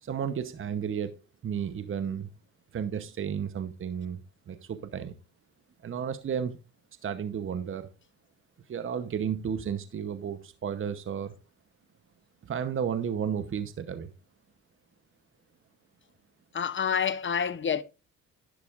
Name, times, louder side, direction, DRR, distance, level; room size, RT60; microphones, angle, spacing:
voice 1, 0.0-1.1 1.4-2.3 2.7-4.2 4.5-5.1 5.8-6.6 7.0-7.9 8.7-11.3 12.4-14.1, right 8 dB, 45° right, 0.9 m, -32 dB
voice 2, 16.5-17.8, left 7 dB, 40° left, 0.8 m, -28 dB
11.0 x 10.5 x 2.5 m
cardioid pair, 90°, 30 cm